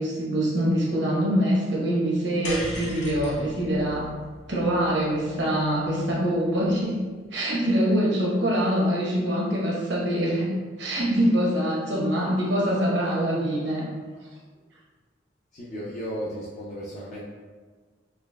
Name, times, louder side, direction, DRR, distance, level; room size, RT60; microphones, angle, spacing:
voice 1, 0.0-4.1 4.5-7.0 7.3-10.5 10.8-13.8, equal, 75° right, -5 dB, 1.0 m, -24 dB
sound 1, 2.4-6.8, equal, 75° left, 0.8 m, -38 dB
voice 2, 15.5-17.2, equal, 40° left, -6 dB, 0.4 m, -34 dB
3.9 x 3.1 x 2.2 m, 1.4 s
head